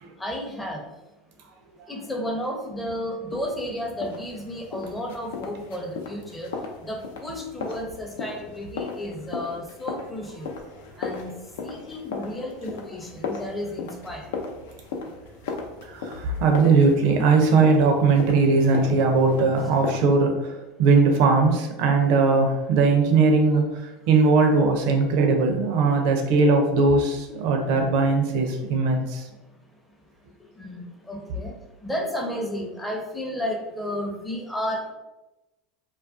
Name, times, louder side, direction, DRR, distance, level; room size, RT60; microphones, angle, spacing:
voice 1, 0.2-0.8 1.9-6.5 6.8-10.5 11.0-11.3 11.6-14.3 22.8-23.0 25.1-25.2 26.3-26.5 30.6-31.5 31.8-34.9, left 1 dB, 10° left, 1 dB, 0.5 m, -32 dB
sound 1, 3.3-20.0, left 4 dB, 80° left, 0.3 m, -36 dB
voice 2, 15.9-20.5 20.8-29.3, right 4 dB, 65° right, 4 dB, 0.5 m, -20 dB
2.3 x 2.2 x 2.4 m, 1.0 s
hypercardioid pair, 90°, 0 cm